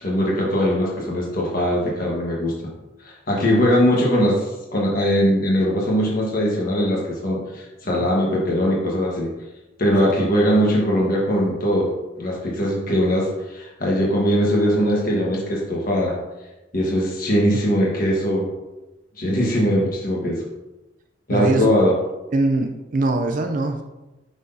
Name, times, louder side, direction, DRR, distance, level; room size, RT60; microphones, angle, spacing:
voice 1, 0.0-2.5 3.0-9.3 9.8-11.9 12.2-16.2 16.7-18.5 19.2-20.4 21.3-21.9, equal, 50° left, -3 dB, 1.3 m, -21 dB
voice 2, 21.3-21.7 22.3-23.8, right 2 dB, 45° right, 5 dB, 0.4 m, -22 dB
6.1 x 5.8 x 2.7 m, 1.0 s
head